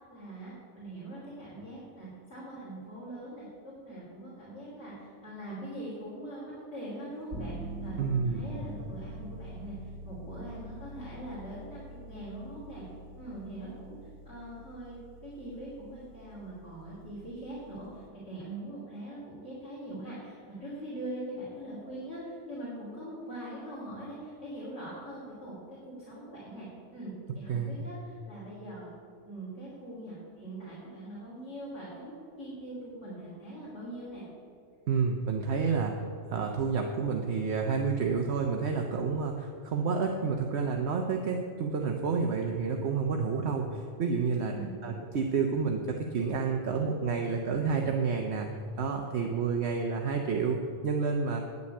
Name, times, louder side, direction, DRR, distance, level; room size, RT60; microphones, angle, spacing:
voice 1, 0.1-12.8 13.2-14.0 14.2-15.0 15.2-26.7 26.9-28.9 29.3-32.1 32.4-34.2 44.3-44.7, right 1 dB, 65° left, -9 dB, 3.5 m, -42 dB
sound 1, 7.3-18.1, right 1 dB, 85° right, 2.8 m, -45 dB
voice 2, 8.0-8.5 27.5-27.8 34.9-36.0 36.3-44.5 44.8-48.5 48.8-51.4, right 5 dB, 65° right, 2 dB, 1.1 m, -29 dB
9.7 x 6.8 x 8.5 m, 2.5 s
omnidirectional pair, 1.2 m